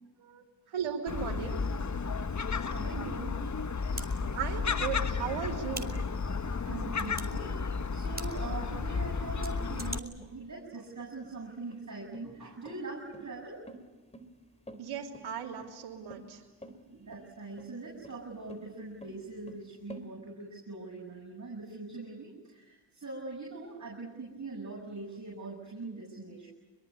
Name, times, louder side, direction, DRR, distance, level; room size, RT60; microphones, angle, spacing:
voice 1, 0.2-1.6 4.3-5.9 14.8-16.4, right 7 dB, 75° right, -2 dB, 3.4 m, -37 dB
Gull seagull, 1.1-10.0, left 4 dB, 35° left, 1.4 m, -33 dB
sound 1, 2.2-2.3 3.9-4.1 5.7-5.9 7.0-7.3 8.2-8.3 9.4-10.0, right 2 dB, 20° right, 4.6 m, -39 dB
voice 2, 2.6-3.4 3.9-4.2 6.7-7.5 7.9-13.6 16.8-26.5, right 3 dB, 35° right, -3 dB, 7.9 m, -42 dB
sound 2, 10.0-20.1, right 1 dB, 15° left, 3.9 m, -51 dB
25.5 x 22.0 x 9.9 m, 1.2 s
supercardioid pair, 40°, 49 cm